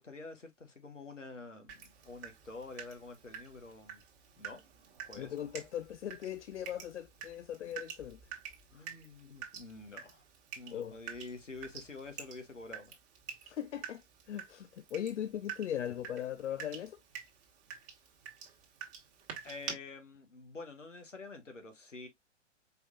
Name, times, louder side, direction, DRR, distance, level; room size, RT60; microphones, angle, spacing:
voice 1, 0.0-4.0 4.4-4.6 5.1-5.3 8.7-10.2 10.6-13.0 19.4-22.1, left 3 dB, 90° left, 1.3 m, -48 dB
Water tap faucet / Drip, 1.7-19.7, right 8 dB, 30° right, 1.4 m, -48 dB
voice 2, 5.1-8.2 10.7-11.0 13.4-17.0, left 10 dB, 75° left, 0.5 m, -39 dB
4.8 x 3.2 x 2.4 m
figure-of-eight pair, 115°, 36 cm